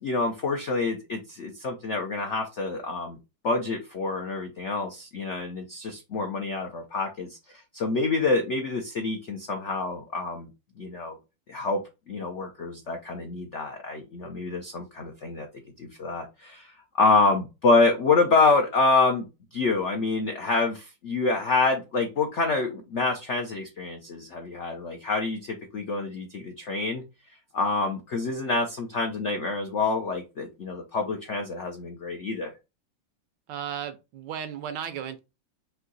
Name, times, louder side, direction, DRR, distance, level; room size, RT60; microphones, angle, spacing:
voice 1, 0.0-3.2 3.4-7.4 7.7-10.5 10.8-11.2 11.5-11.8 12.1-15.5 15.8-19.2 19.5-27.0 27.5-32.5, left 3 dB, 75° left, 0.6 m, -27 dB
voice 2, 33.5-35.2, right 9 dB, 70° right, 1.1 m, -35 dB
4.6 x 2.7 x 3.8 m
omnidirectional pair, 2.2 m